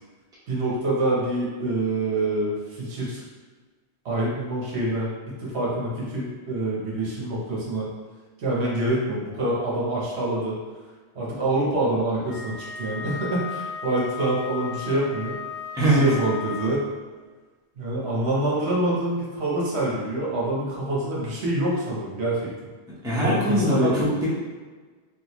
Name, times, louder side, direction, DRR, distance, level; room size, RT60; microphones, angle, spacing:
voice 1, 0.5-3.2 4.0-7.9 8.4-10.6 11.1-15.4 15.8-16.9 17.8-22.5 23.2-24.0, right 1 dB, 70° right, -5 dB, 1.1 m, -26 dB
Wind instrument woodwind instrument, 12.3-17.0, left 6 dB, 30° left, 1.1 m, -36 dB
voice 2, 23.0-24.3, right 1 dB, 5° right, -8 dB, 0.7 m, -21 dB
3.5 x 2.4 x 2.9 m, 1.4 s
omnidirectional pair, 1.2 m